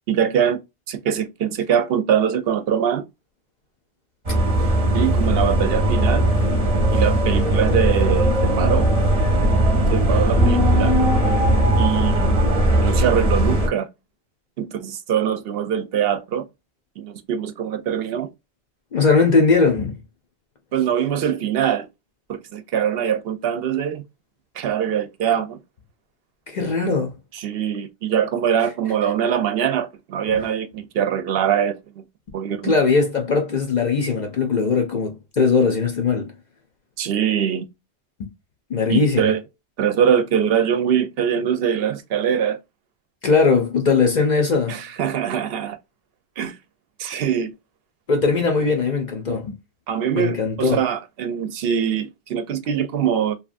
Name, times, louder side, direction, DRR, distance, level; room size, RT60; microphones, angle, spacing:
voice 1, 0.1-0.6 0.9-3.1 4.9-6.3 6.9-8.3 8.6-8.9 9.9-10.9 11.8-12.3 12.7-13.9 14.6-16.4 17.0-18.3 20.7-21.9 22.3-24.0 24.6-25.6 27.4-32.0 32.3-32.7 37.0-37.7 38.9-39.4 39.8-42.6 44.7-45.8 46.4-46.6 47.0-47.5 49.9-53.4, right 8 dB, 65° right, 0.7 m, -23 dB
sound 1, 4.3-13.7, right 1 dB, 35° right, 0.8 m, -18 dB
voice 2, 18.9-20.0 26.5-27.1 30.3-30.4 32.6-36.3 38.2-38.3 38.7-39.3 43.2-44.8 48.1-49.6 50.1-50.8, left 4 dB, 50° left, 0.6 m, -19 dB
2.9 x 2.2 x 2.4 m
omnidirectional pair, 1.1 m